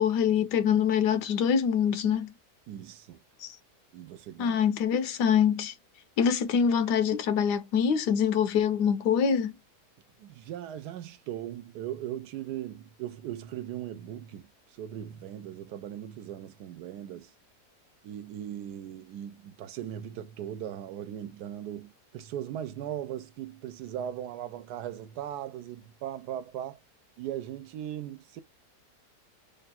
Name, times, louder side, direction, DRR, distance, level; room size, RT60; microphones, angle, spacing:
voice 1, 0.0-2.3 3.4-3.6 4.4-5.7 6.2-9.5, left 7 dB, 85° left, 1.2 m, -25 dB
voice 2, 2.7-3.2 3.9-4.6 10.2-17.3 18.0-26.8 27.2-28.4, right 11 dB, 75° right, 1.1 m, -38 dB
3.5 x 2.3 x 4.1 m
omnidirectional pair, 1.8 m